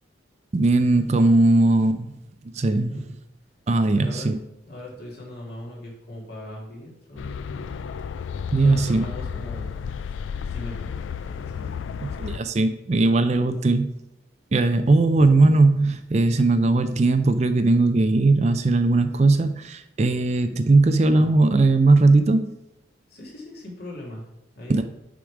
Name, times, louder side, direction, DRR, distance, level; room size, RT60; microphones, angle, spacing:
voice 1, 0.5-2.1 2.6-3.0 3.7-4.4 8.5-9.1 12.0-13.9 14.5-22.5 24.7-24.8, right 2 dB, 35° right, 10 dB, 0.4 m, -19 dB
voice 2, 3.9-4.3 4.7-7.8 8.6-11.7 21.2-21.4 23.1-24.3 24.6-24.8, left 1 dB, 55° left, -3 dB, 2.4 m, -40 dB
sound 1, 7.2-12.4, left 6 dB, 80° left, 0.3 m, -32 dB
7.1 x 5.0 x 4.8 m, 0.88 s
head